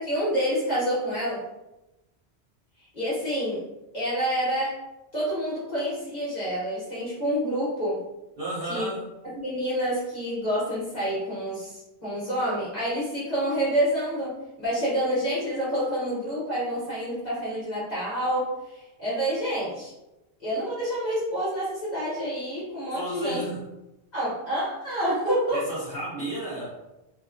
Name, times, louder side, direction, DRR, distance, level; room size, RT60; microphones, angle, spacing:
voice 1, 0.0-1.4 2.9-3.6 3.9-4.8 5.1-8.0 8.7-8.9 9.3-19.9 20.4-23.4 24.1-25.6, equal, 40° left, -11 dB, 1.2 m, -28 dB
voice 2, 8.4-9.1 22.9-23.8 25.5-26.7, right 1 dB, 60° right, -10 dB, 0.9 m, -33 dB
2.8 x 2.3 x 2.4 m, 0.97 s
omnidirectional pair, 1.1 m